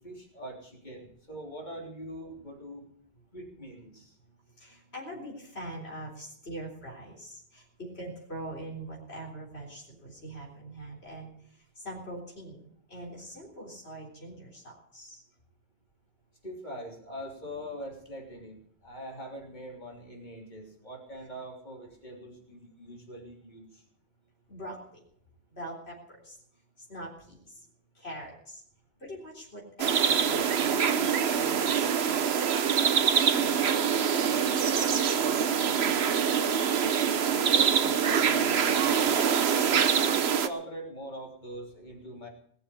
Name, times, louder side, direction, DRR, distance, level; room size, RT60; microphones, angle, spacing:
voice 1, 0.0-2.9 3.3-4.1 16.4-23.8 37.5-39.1 39.5-42.3, equal, 45° left, -1 dB, 3.5 m, -43 dB
voice 2, 4.6-11.3 11.8-15.2 24.5-25.0 25.5-26.4 26.8-27.4 28.0-28.6 29.0-32.2 33.3-34.9 35.1-36.0, right 1 dB, 80° left, -2 dB, 4.1 m, -43 dB
sound 1, 29.8-40.5, right 7 dB, 80° right, 1.1 m, -25 dB
20.0 x 7.0 x 8.4 m, 0.66 s
omnidirectional pair, 1.1 m